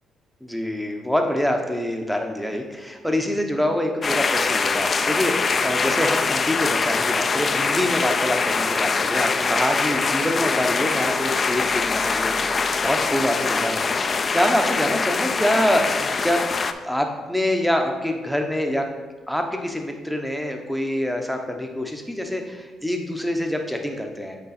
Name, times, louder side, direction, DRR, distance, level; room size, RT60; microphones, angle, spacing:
voice 1, 0.4-12.5 12.8-16.5 16.8-18.8 19.3-24.4, left 1 dB, ahead, 3 dB, 0.8 m, -25 dB
sound 1, 4.0-16.7, left 4 dB, 40° left, 0.4 m, -23 dB
8.2 x 3.8 x 4.2 m, 1.3 s
cardioid pair, 90°, 0 cm